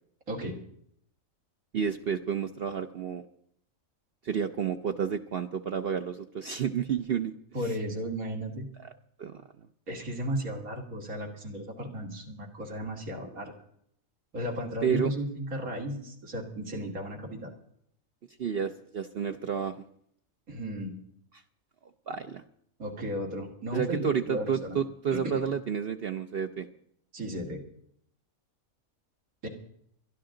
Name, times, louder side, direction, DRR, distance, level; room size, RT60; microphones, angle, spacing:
voice 1, 0.3-0.6 7.5-8.7 9.9-13.5 14.3-17.5 20.5-20.9 22.8-24.8 25.1-25.4 27.1-27.6 29.4-29.5, equal, 85° right, 1 dB, 2.7 m, -35 dB
voice 2, 1.7-3.2 4.2-7.3 8.8-8.9 9.2-9.4 14.8-15.1 18.4-19.8 22.1-22.4 23.7-26.7, right 7 dB, 55° right, 7 dB, 0.7 m, -30 dB
22.5 x 11.5 x 3.8 m, 0.68 s
omnidirectional pair, 1.4 m